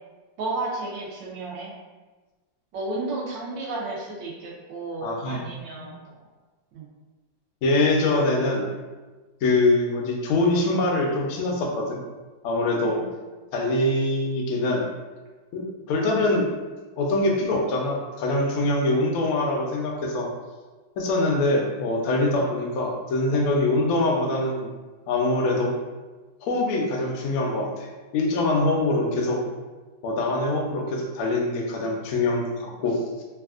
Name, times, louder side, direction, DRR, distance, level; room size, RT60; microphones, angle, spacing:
voice 1, 0.4-1.7 2.7-6.2 6.7-6.9 12.8-13.0, right 2 dB, 80° right, -3 dB, 1.3 m, -32 dB
voice 2, 5.0-5.5 5.7-5.9 7.6-8.7 9.4-12.0 12.4-13.0 13.5-14.8 15.5-16.5 17.0-20.3 21.0-24.7 25.1-25.7 26.4-29.4 30.0-33.2, left 2 dB, 85° left, 0 dB, 0.7 m, -24 dB
3.3 x 2.4 x 2.3 m, 1.3 s
omnidirectional pair, 2.0 m